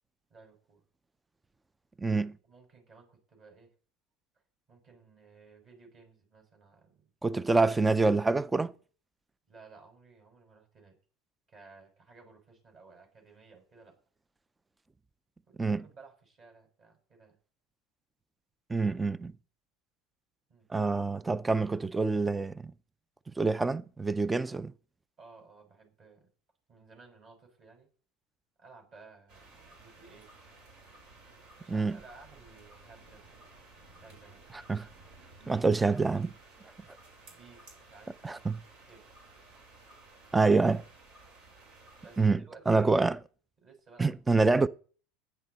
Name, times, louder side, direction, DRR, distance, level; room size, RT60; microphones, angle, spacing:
voice 1, 0.3-0.8 2.4-3.7 4.7-7.1 9.5-11.0 11.5-14.0 15.5-17.4 20.5-20.7 25.2-26.3 26.7-27.9 28.6-30.3 31.6-33.3 34.0-34.4 35.4-35.7 37.3-38.4 38.9-39.0 42.0-43.1 43.6-44.4, right 4 dB, 35° right, 5.5 m, -56 dB
voice 2, 2.0-2.4 7.2-8.7 15.6-15.8 18.7-19.3 20.7-22.7 23.4-24.7 31.7-32.0 34.7-34.9 35.5-36.3 38.2-38.6 40.3-40.8 42.2-42.4 42.7-43.2 44.0-44.7, right 3 dB, 10° right, 0.5 m, -26 dB
sound 1, 29.3-42.3, right 3 dB, 70° right, 7.3 m, -55 dB
15.0 x 9.5 x 4.1 m
supercardioid pair, 130°, 0 cm